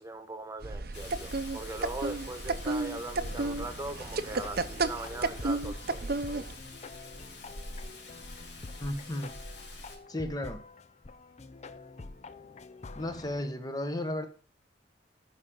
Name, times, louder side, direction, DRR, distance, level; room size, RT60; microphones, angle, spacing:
voice 1, 0.0-6.5, right 2 dB, 15° right, 1.4 m, -40 dB
sound 1, 0.6-6.6, right 3 dB, 60° right, 0.7 m, -33 dB
Rain, 0.9-10.0, left 2 dB, 75° left, 3.0 m, -47 dB
sound 2, 3.2-13.4, left 3 dB, 40° left, 0.6 m, -47 dB
voice 2, 8.8-9.4 10.1-10.6 12.9-14.3, left 1 dB, 20° left, 1.3 m, -34 dB
12.0 x 5.0 x 7.7 m
head